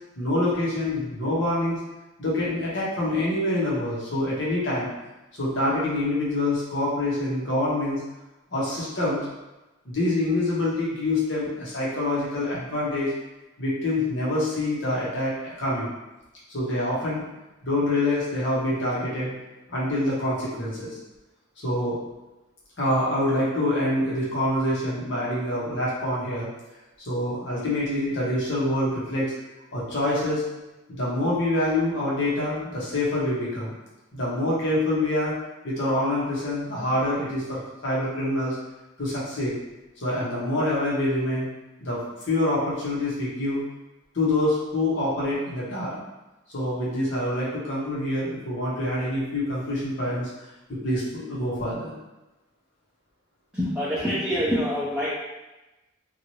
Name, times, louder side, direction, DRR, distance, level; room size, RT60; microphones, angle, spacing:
voice 1, 0.2-1.8 2.2-4.9 5.3-8.0 8.5-9.2 9.8-13.1 13.6-15.9 16.5-17.3 17.6-19.3 19.7-21.0 21.6-22.0 22.8-26.5 27.0-29.3 29.7-30.4 30.9-33.7 34.1-35.4 35.6-38.6 39.0-39.5 40.0-41.5 41.8-42.0 42.3-43.6 44.1-46.0 46.5-50.3 50.7-51.9, left 1 dB, 70° left, -7 dB, 1.0 m, -26 dB
voice 2, 53.5-55.1, equal, 5° right, -10 dB, 0.5 m, -25 dB
2.7 x 2.5 x 3.0 m, 1.0 s
head